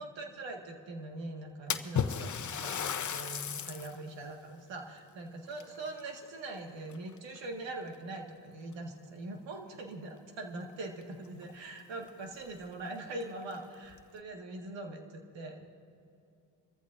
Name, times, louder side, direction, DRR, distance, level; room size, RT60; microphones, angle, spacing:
voice 1, 0.0-15.7, right 2 dB, 75° right, 2 dB, 1.9 m, -42 dB
Splash splatter, 1.7-4.0 4.5-4.6 5.5-6.5 6.9-7.4 8.2-8.3 8.7-8.8 11.0-11.1 11.4-11.5 12.1-12.2 12.6-12.7 13.4-14.0, left 7 dB, 40° left, 0.8 m, -35 dB
25.5 x 14.5 x 2.6 m, 2.6 s
supercardioid pair, 60°, 45 cm